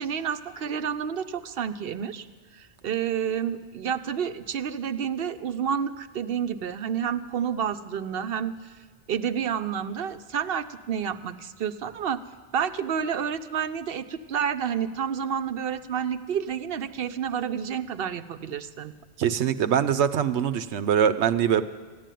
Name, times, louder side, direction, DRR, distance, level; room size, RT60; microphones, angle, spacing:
voice 1, 0.0-2.3 2.5-8.8 9.1-12.2 12.5-18.9, right 8 dB, 65° right, 11 dB, 0.8 m, -29 dB
voice 2, 19.2-21.6, right 8 dB, 80° right, 13 dB, 1.0 m, -23 dB
14.5 x 10.5 x 9.1 m, 1.4 s
omnidirectional pair, 1.1 m